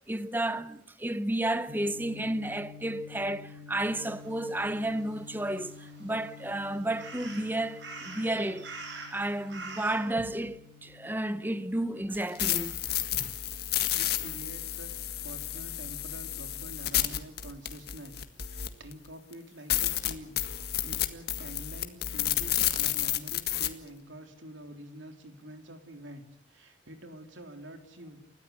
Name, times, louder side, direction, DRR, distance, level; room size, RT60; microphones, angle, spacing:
voice 1, 0.1-8.7 9.1-12.8 13.1-13.3, right 1 dB, 10° right, 0.8 m, -32 dB
sound 1, 1.7-13.9, left 4 dB, 30° right, 1.9 m, -51 dB
sound 2, 3.8-10.1, right 3 dB, 70° right, 7.8 m, -46 dB
sound 3, 12.1-18.9 19.3-19.4 19.7-23.7, left 12 dB, 55° left, 1.8 m, -31 dB
voice 2, 13.9-14.9 15.2-28.2, right 1 dB, 85° right, 3.6 m, -47 dB
30.0 x 14.0 x 8.4 m
head